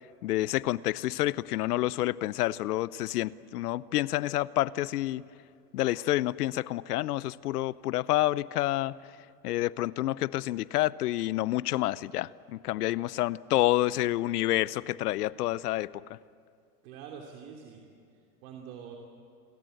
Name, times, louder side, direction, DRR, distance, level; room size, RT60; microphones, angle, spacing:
voice 1, 0.2-5.2 5.7-9.0 9.4-16.0, left 16 dB, 80° left, 20 dB, 0.8 m, -28 dB
voice 2, 16.8-19.0, right 7 dB, 65° right, 1 dB, 3.1 m, -46 dB
28.0 x 23.0 x 7.9 m, 2.3 s
supercardioid pair, 130°, 46 cm